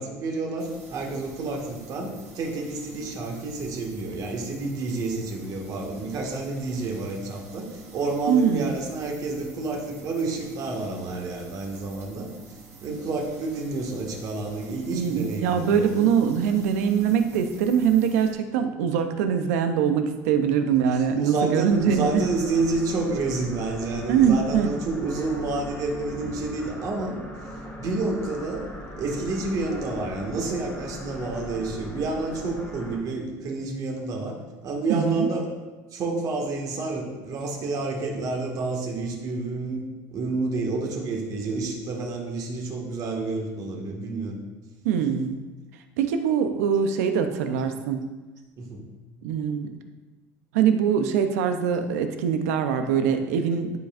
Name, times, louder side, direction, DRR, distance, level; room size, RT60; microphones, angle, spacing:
voice 1, 0.0-12.3 12.8-16.0 20.6-20.7 21.2-27.2 27.8-28.7 29.0-35.5 35.9-39.8 40.1-44.4 48.6-48.8, right 3 dB, 50° right, 0 dB, 1.8 m, -29 dB
sound 1, 0.6-18.3, right 3 dB, 30° right, 1.9 m, -48 dB
voice 2, 8.3-8.7 14.9-22.2 24.1-24.7 34.9-35.3 44.8-45.4 46.0-48.0 49.2-49.7 50.5-53.7, right 7 dB, 90° right, 7 dB, 0.7 m, -23 dB
sound 2, 21.7-33.0, left 1 dB, 25° left, 1.7 m, -39 dB
12.5 x 5.1 x 2.5 m, 1.2 s
supercardioid pair, 105°, 8 cm